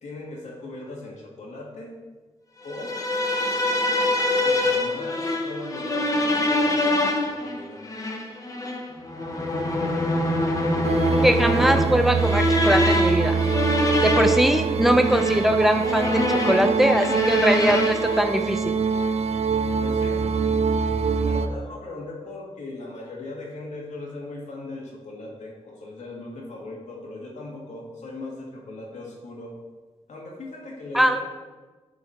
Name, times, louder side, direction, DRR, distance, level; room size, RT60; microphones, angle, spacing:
voice 1, 0.0-2.0 2.6-2.9 4.4-6.9 7.2-7.8 19.8-20.2 21.2-29.5 30.1-31.2, left 2 dB, 85° left, -2 dB, 2.4 m, -38 dB
sound 1, 2.7-18.2, left 1 dB, 30° left, 0.9 m, -25 dB
sound 2, 10.8-21.5, right 5 dB, 65° right, 0.5 m, -24 dB
voice 2, 11.2-13.4 14.0-18.7 30.9-31.2, equal, ahead, 6 dB, 0.5 m, -21 dB
11.5 x 4.9 x 4.4 m, 1.3 s
wide cardioid pair, 180°, 12 cm